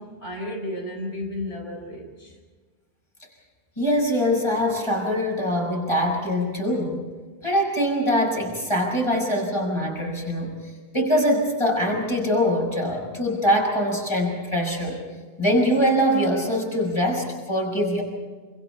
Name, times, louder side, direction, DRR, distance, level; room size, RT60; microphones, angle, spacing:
voice 1, 0.0-2.4, left 1 dB, 75° left, 0 dB, 5.0 m, -33 dB
voice 2, 3.8-7.0 7.4-10.5 10.9-15.0 15.4-18.0, equal, 25° left, 0 dB, 6.2 m, -23 dB
27.0 x 27.0 x 4.5 m, 1.4 s
omnidirectional pair, 1.1 m